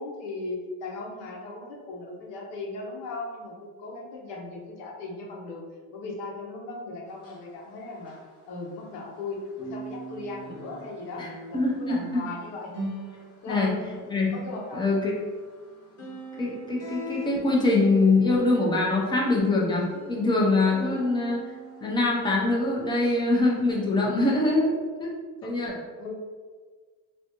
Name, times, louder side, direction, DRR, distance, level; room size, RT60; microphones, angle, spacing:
voice 1, 0.0-5.6 5.9-8.1 8.5-12.7 13.4-13.7 14.3-14.8 20.9-21.1 25.4-25.7 26.0-26.2, left 3 dB, 70° left, -1 dB, 0.9 m, -37 dB
sound 1, 7.1-9.3 9.5-22.6 23.0-23.2 23.7-23.8, right 1 dB, 40° left, 0.8 m, -41 dB
voice 2, 11.5-12.3 13.5-13.7 14.1-14.3 14.7-15.1 16.4-21.4 21.8-24.7 25.0-25.1 25.4-25.8, left 2 dB, 15° left, -3 dB, 0.4 m, -23 dB
3.4 x 2.5 x 2.8 m, 1.5 s
cardioid pair, 155°, 38 cm